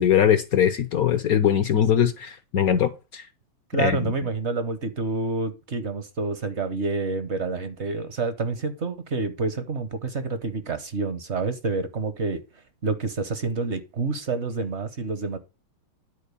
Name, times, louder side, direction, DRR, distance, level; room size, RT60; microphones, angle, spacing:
voice 1, 0.0-3.2 3.8-4.0, left 9 dB, 70° left, 0.8 m, -21 dB
voice 2, 3.7-12.4 12.8-15.4, right 3 dB, 55° right, 0.8 m, -28 dB
10.0 x 4.4 x 6.8 m
omnidirectional pair, 2.3 m